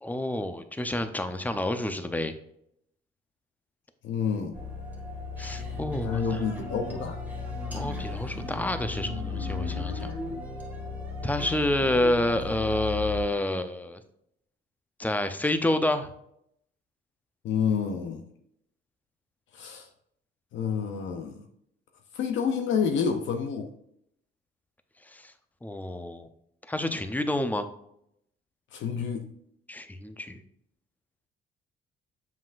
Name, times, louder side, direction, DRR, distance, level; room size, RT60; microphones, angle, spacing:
voice 1, 0.0-2.3 5.4-6.4 7.7-10.1 11.2-14.0 15.0-16.1 25.1-25.3 25.6-26.3 26.7-27.7 29.7-30.4, left 1 dB, 10° left, 9 dB, 0.6 m, -29 dB
voice 2, 4.0-4.5 6.0-7.2 17.4-18.2 19.5-19.9 20.5-21.4 22.1-23.7 28.7-29.2, left 6 dB, 75° left, 4 dB, 0.6 m, -28 dB
sound 1, 4.5-13.2, left 3 dB, 10° right, 1.5 m, -35 dB
7.3 x 5.7 x 2.5 m, 0.75 s
cardioid pair, 90°, 20 cm